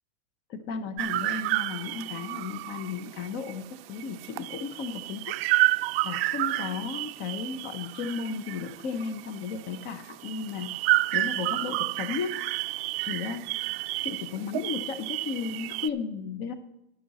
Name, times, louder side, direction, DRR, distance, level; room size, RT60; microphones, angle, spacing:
voice 1, 0.5-5.4 6.0-10.8 11.1-12.5 13.0-13.6 14.0-16.5, left 5 dB, 35° left, 10 dB, 0.8 m, -34 dB
sound 1, 1.0-15.9, right 18 dB, 55° right, 0.4 m, -30 dB
12.0 x 10.0 x 4.1 m, 0.89 s
supercardioid pair, 150°, 35 cm